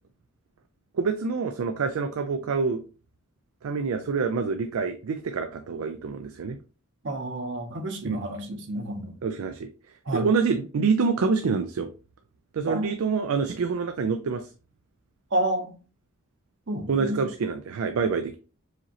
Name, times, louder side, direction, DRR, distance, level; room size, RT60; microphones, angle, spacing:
voice 1, 0.9-2.8 3.6-6.6 8.0-8.2 9.2-9.7 10.1-11.9 12.5-14.5 16.9-18.4, right 5 dB, 80° right, 0.4 m, -26 dB
voice 2, 7.0-9.2 10.0-10.3 12.6-12.9 15.3-15.8 16.7-17.3, right 1 dB, 55° right, 0.8 m, -30 dB
4.8 x 3.1 x 2.8 m
head